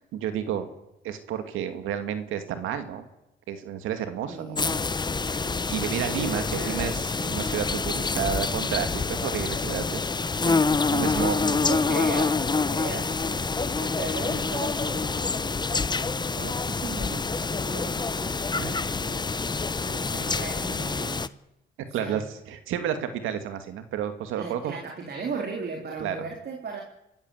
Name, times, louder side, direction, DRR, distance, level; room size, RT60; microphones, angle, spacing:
voice 1, 0.1-0.7 1.0-3.1 3.5-4.6 5.2-5.4 5.7-10.1 10.5-11.4 18.6-18.8 21.9-24.7 26.0-26.3, right 9 dB, 90° right, 8 dB, 2.4 m, -31 dB
voice 2, 4.3-4.7 5.4-7.5 10.4-15.4 16.3-21.3 21.9-22.2 24.4-26.8, right 4 dB, 55° right, 2 dB, 4.0 m, -37 dB
sound 1, 4.5-21.3, left 4 dB, 20° left, 0.8 m, -27 dB
25.5 x 14.5 x 8.1 m, 0.89 s
cardioid pair, 90°, 20 cm